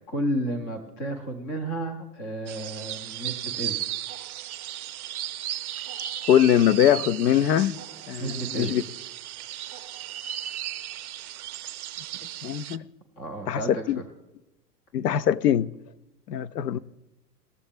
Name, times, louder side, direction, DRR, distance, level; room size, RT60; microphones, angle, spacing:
voice 1, 0.0-3.9 8.2-8.7 13.2-14.1, right 1 dB, 10° left, 0.3 m, -32 dB
sound 1, 2.5-12.8, right 12 dB, 60° right, 0.6 m, -35 dB
voice 2, 6.3-7.8 8.1-8.8 12.4-12.8 13.5-14.0 14.9-15.7 16.3-16.8, left 10 dB, 75° left, 0.5 m, -22 dB
19.0 x 7.0 x 3.6 m
figure-of-eight pair, 100°, 50 cm